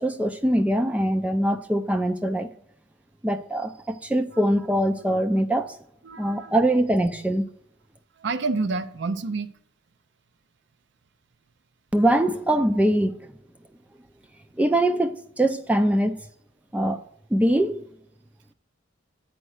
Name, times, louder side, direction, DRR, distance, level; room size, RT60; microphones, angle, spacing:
voice 1, 0.0-2.5 3.2-5.8 6.2-7.4 11.9-13.3 14.6-16.2 16.7-17.0 17.3-17.8, right 1 dB, 5° right, 0.4 m, -23 dB
voice 2, 6.0-6.5 8.2-9.5, right 3 dB, 60° right, 0.5 m, -28 dB
8.8 x 4.4 x 6.3 m
head